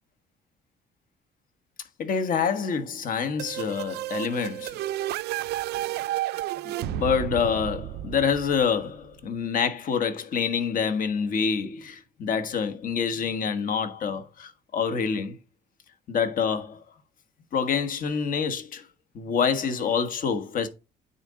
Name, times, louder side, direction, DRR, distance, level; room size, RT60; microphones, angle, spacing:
voice 1, 2.0-4.8 6.6-15.4 16.1-16.8 17.5-18.9 19.1-20.7, left 6 dB, 55° left, 1.3 m, -27 dB
sound 1, 3.4-9.1, right 15 dB, 75° right, 0.4 m, -32 dB
9.4 x 4.1 x 3.7 m
cardioid pair, 110°, 17 cm